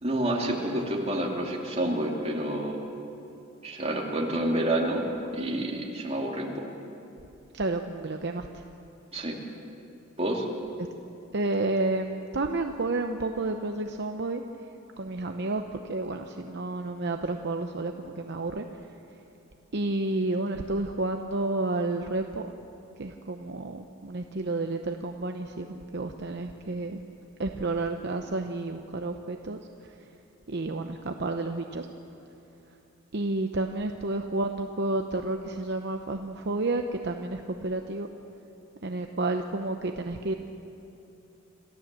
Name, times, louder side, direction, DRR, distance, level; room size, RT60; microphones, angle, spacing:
voice 1, 0.0-2.8 3.6-5.1 5.3-6.6 9.1-9.4 10.2-10.4, right 1 dB, 30° right, -1 dB, 2.7 m, -28 dB
voice 2, 7.5-8.5 11.3-14.4 15.0-15.6 15.9-18.7 19.7-22.5 23.0-27.0 27.4-29.6 30.5-31.9 33.1-38.1 38.8-40.3, right 2 dB, 60° right, 5 dB, 0.8 m, -30 dB
27.5 x 15.0 x 7.6 m, 2.8 s
head